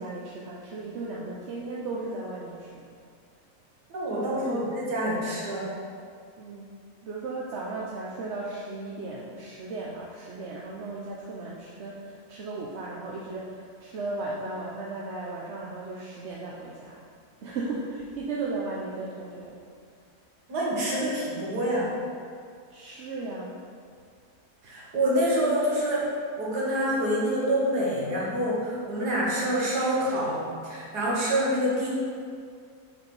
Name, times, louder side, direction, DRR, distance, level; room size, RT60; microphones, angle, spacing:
voice 1, 0.0-2.9 4.1-4.7 6.4-6.8 7.0-17.0 17.4-19.6 22.7-23.6, right 3 dB, 55° right, -3 dB, 0.9 m, -36 dB
voice 2, 3.9-5.7 20.5-21.9 24.6-26.1 26.4-31.9, right 1 dB, 80° right, -6 dB, 2.2 m, -27 dB
6.9 x 4.8 x 5.4 m, 2.2 s
omnidirectional pair, 1.7 m